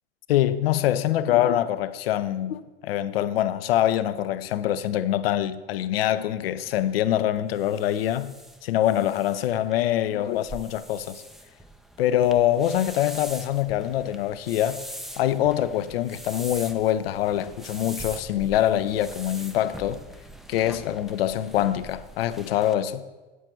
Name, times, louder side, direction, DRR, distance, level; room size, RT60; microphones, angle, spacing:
voice 1, 0.3-8.3 8.6-11.2 12.0-14.8 15.2-20.0 20.5-23.0, left 12 dB, 65° left, 0.6 m, -24 dB
sound 1, 6.6-22.7, right 1 dB, ahead, 0.5 m, -43 dB
8.7 x 8.2 x 4.5 m
figure-of-eight pair, 85°, 32 cm